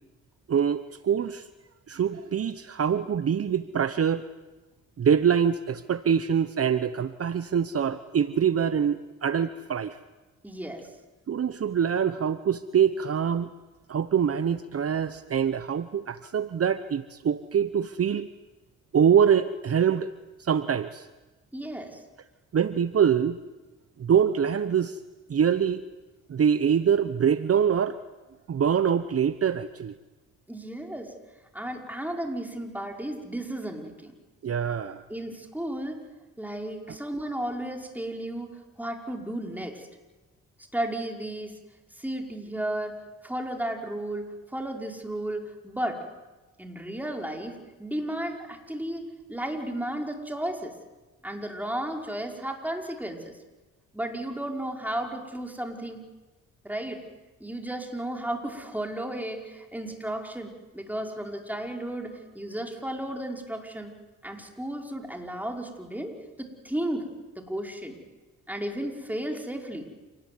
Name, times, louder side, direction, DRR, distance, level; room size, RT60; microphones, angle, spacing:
voice 1, 0.5-1.5 1.9-4.2 5.0-10.0 11.3-13.5 13.9-18.3 18.9-20.1 20.4-21.1 22.5-23.4 24.0-25.0 25.3-25.8 26.3-28.0 28.5-29.9 34.4-35.0, right 8 dB, 45° right, 12 dB, 1.0 m, -24 dB
voice 2, 10.4-10.9 21.5-22.0 30.5-31.1 31.5-34.1 35.1-36.0 36.4-39.9 40.7-41.5 42.0-43.0 43.2-46.0 46.6-50.7 51.2-53.3 53.9-56.0 56.6-57.0 57.4-63.9 64.2-67.1 67.4-68.0 68.5-69.9, right 1 dB, 5° right, 2 dB, 5.4 m, -34 dB
28.0 x 19.5 x 9.6 m, 1.1 s
cardioid pair, 65°, 32 cm